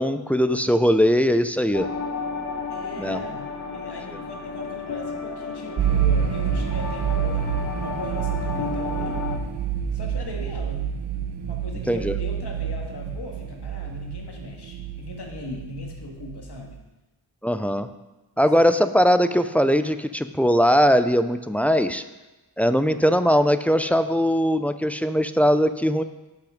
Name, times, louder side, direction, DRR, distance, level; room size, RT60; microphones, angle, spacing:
voice 1, 0.0-1.9 3.0-3.2 11.9-12.2 17.4-17.9 18.4-22.0 22.6-26.0, equal, 5° left, 10 dB, 0.4 m, -20 dB
sound 1, 1.7-9.4, left 4 dB, 40° left, 0.9 m, -32 dB
voice 2, 2.7-3.5 3.7-9.2 9.9-10.9 11.4-16.8 18.4-18.5, left 2 dB, 60° left, 0 dB, 2.0 m, -39 dB
sound 2, 5.8-16.7, right 8 dB, 65° right, 0.8 m, -28 dB
11.5 x 5.9 x 5.1 m, 1.1 s
wide cardioid pair, 125°, 44 cm